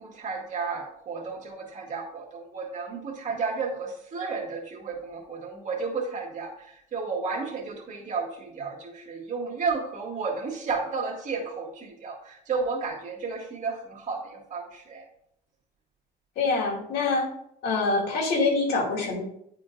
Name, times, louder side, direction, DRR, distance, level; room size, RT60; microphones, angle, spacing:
voice 1, 0.0-15.1, right 4 dB, 45° right, -1 dB, 2.0 m, -32 dB
voice 2, 16.4-17.2 17.6-19.2, left 3 dB, 75° left, -2 dB, 2.3 m, -25 dB
10.0 x 4.3 x 2.5 m, 0.72 s
cardioid pair, 110°, 17 cm